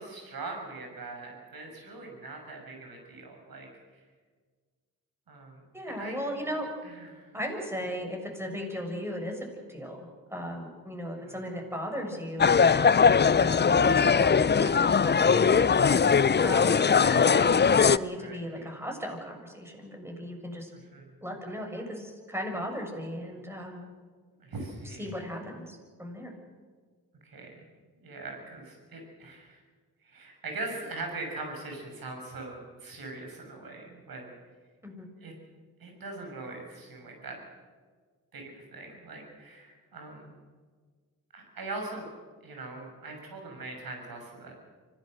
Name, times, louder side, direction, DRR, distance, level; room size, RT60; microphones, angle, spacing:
voice 1, 0.0-3.7 5.3-5.6 5.9-6.2 6.8-7.2 11.2-11.4 18.2-18.7 20.9-21.1 24.4-25.1 27.2-27.6 28.0-29.6 30.0-34.3 35.2-35.3 35.8-37.4 38.3-40.3 41.3-42.1 42.4-44.6, right 2 dB, 70° right, 2 dB, 6.7 m, -41 dB
voice 2, 5.7-6.7 7.3-16.0 16.4-20.7 21.2-23.8 24.8-26.3 34.8-35.1, equal, 5° right, 2 dB, 7.1 m, -37 dB
sound 1, 12.4-18.0, left 6 dB, 30° left, 0.6 m, -21 dB
25.0 x 17.5 x 6.7 m, 1.5 s
supercardioid pair, 50°, 37 cm